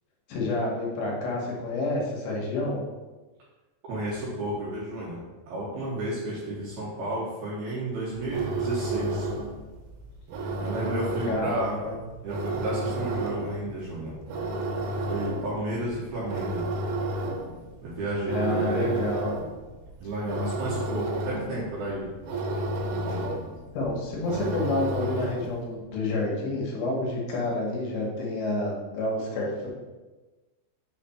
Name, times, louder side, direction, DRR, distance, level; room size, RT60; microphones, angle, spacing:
voice 1, 0.3-2.8 11.3-12.0 18.3-19.3 23.7-29.7, left 2 dB, 75° left, -2 dB, 3.1 m, -29 dB
voice 2, 3.9-5.2 5.5-9.3 10.6-11.7 12.2-14.1 15.1-16.6 17.8-19.0 20.0-22.1 22.9-23.2, right 1 dB, 70° right, -7 dB, 2.6 m, -32 dB
sound 1, 8.1-25.6, right 2 dB, 90° right, 3.1 m, -32 dB
6.8 x 3.3 x 4.3 m, 1.2 s
omnidirectional pair, 5.4 m